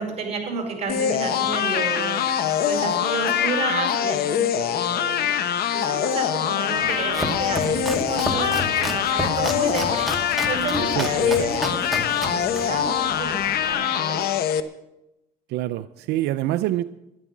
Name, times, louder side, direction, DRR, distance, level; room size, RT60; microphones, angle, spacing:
voice 1, 0.0-2.2 2.6-5.3 5.7-13.4 13.6-14.2 16.4-16.5, right 3 dB, 40° right, 3 dB, 4.9 m, -31 dB
sound 1, 0.9-14.6, left 9 dB, 65° left, 0.9 m, -23 dB
Domestic sounds home sounds, 6.8-13.7, equal, ahead, 2.0 m, -32 dB
voice 2, 10.8-11.4 15.5-16.8, right 15 dB, 85° right, 12 dB, 0.5 m, -26 dB
12.5 x 11.0 x 7.2 m, 0.91 s
cardioid pair, 110°, 17 cm